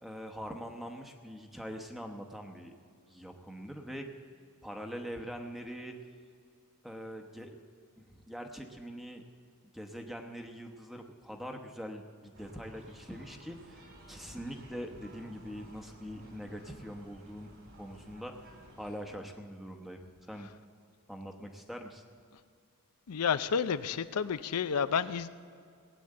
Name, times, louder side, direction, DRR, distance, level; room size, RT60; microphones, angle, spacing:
voice 1, 0.0-2.7 3.1-4.1 4.6-5.9 6.8-7.6 8.1-9.2 9.7-17.5 17.8-18.3 18.8-20.0 20.3-20.5 21.1-22.0, equal, ahead, 3 dB, 0.9 m, -43 dB
sound 1, 12.3-19.0, right 1 dB, 60° right, 3.6 m, -54 dB
voice 2, 23.1-25.3, left 6 dB, 85° left, 13 dB, 0.5 m, -30 dB
18.5 x 8.6 x 7.7 m, 2.3 s
head